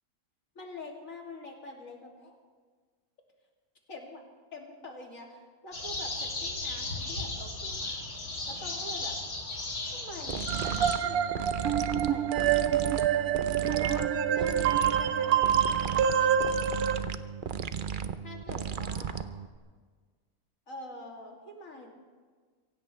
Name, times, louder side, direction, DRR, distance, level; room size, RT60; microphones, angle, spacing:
voice 1, 0.5-2.4 3.9-4.2 4.5-8.0 8.5-9.2 9.9-13.3 13.7-16.4 18.2-19.3 20.7-21.9, left 2 dB, 65° left, 0 dB, 3.0 m, -46 dB
sound 1, 5.7-10.9, left 2 dB, 90° left, 3.1 m, -36 dB
sound 2, 10.3-19.6, right 7 dB, 55° right, 0.6 m, -35 dB
sound 3, 10.5-17.0, right 9 dB, 85° right, 1.3 m, -26 dB
25.0 x 17.0 x 3.3 m, 1.5 s
omnidirectional pair, 1.5 m